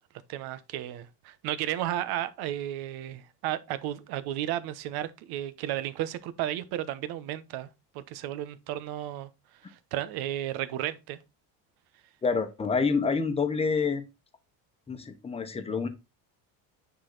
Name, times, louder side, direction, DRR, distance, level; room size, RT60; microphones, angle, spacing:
voice 1, 0.3-7.7 7.9-9.3 9.7-11.2, right 12 dB, 75° right, 1.1 m, -33 dB
voice 2, 12.2-14.0 14.9-15.9, left 5 dB, 15° left, 1.1 m, -27 dB
9.7 x 4.0 x 4.0 m
cardioid pair, 145°, 38 cm